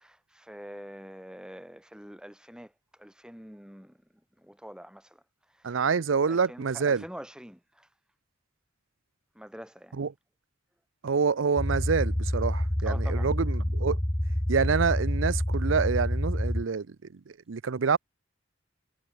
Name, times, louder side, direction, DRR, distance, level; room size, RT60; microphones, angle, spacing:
voice 1, 0.0-4.0 4.4-5.2 5.5-5.9 6.3-7.9 9.3-10.0 12.8-13.3, equal, 5° right, 6.6 m, -46 dB
voice 2, 5.6-7.0 10.0-10.1 11.0-14.0 14.5-16.9 17.5-18.0, right 5 dB, 85° right, 0.6 m, -27 dB
sound 1, 11.6-16.6, equal, 15° left, 1.4 m, -28 dB
head